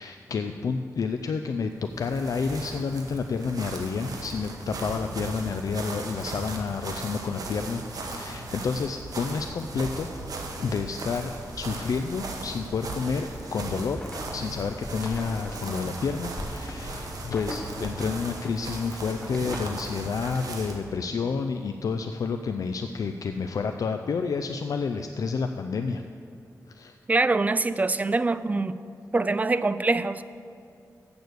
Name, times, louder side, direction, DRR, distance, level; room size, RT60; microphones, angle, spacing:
voice 1, 0.0-10.1 10.6-14.0 14.3-26.0 26.7-27.0, left 5 dB, 65° left, 6 dB, 0.4 m, -30 dB
sound 1, 1.8-20.9, right 3 dB, 75° right, 1.1 m, -37 dB
sound 2, 8.4-20.3, left 2 dB, 85° left, 1.4 m, -46 dB
sound 3, 14.0-19.9, left 1 dB, 15° left, 0.8 m, -44 dB
voice 2, 27.1-28.7 29.1-30.2, right 3 dB, 25° right, 14 dB, 0.3 m, -24 dB
8.1 x 6.8 x 7.9 m, 2.5 s
wide cardioid pair, 110°, 6 cm